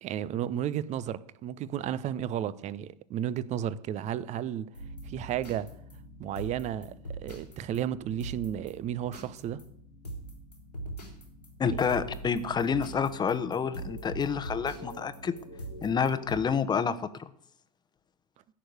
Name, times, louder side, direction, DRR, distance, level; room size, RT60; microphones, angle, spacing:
voice 1, 0.0-4.7 5.1-5.7 6.2-9.6 11.6-11.8, right 10 dB, 35° right, 0.8 m, -33 dB
sound 1, 4.7-16.4, right 2 dB, 85° left, 3.8 m, -43 dB
voice 2, 11.6-15.4 15.8-17.3, left 6 dB, 20° left, 1.1 m, -28 dB
15.5 x 6.5 x 9.4 m
figure-of-eight pair, 80°, 21 cm